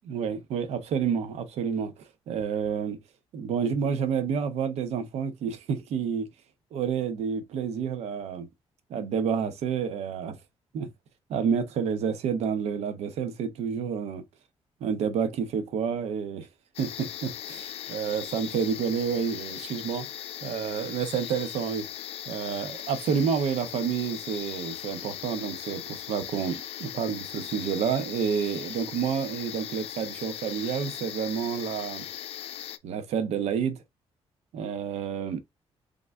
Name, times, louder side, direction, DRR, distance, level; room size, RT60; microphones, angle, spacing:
voice 1, 0.0-3.0 3.3-6.3 6.7-8.5 8.9-10.4 10.7-10.9 11.3-14.2 14.8-16.5 16.8-20.1 20.4-21.9 22.3-32.1 32.8-33.8 34.5-35.4, right 7 dB, 85° right, 0.9 m, -29 dB
sound 1, 16.7-32.8, left 11 dB, 65° left, 0.5 m, -39 dB
3.9 x 3.5 x 3.4 m
cardioid pair, 175°, 11 cm